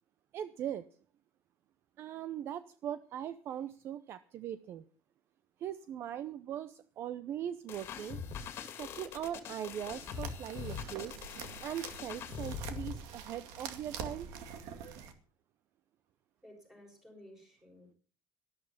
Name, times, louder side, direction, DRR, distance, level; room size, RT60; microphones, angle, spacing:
voice 1, 0.3-0.9 2.0-4.9 5.6-8.2 8.8-11.2 11.6-14.3, right 10 dB, 40° right, 14 dB, 0.6 m, -40 dB
sound 1, 7.7-13.0, left 7 dB, 40° left, 2.2 m, -43 dB
sound 2, 10.0-15.1, right 7 dB, 65° right, 2.2 m, -46 dB
voice 2, 16.4-18.0, left 1 dB, 5° right, 1 dB, 5.8 m, -55 dB
12.5 x 12.5 x 5.7 m, 0.41 s
cardioid pair, 175°, 7 cm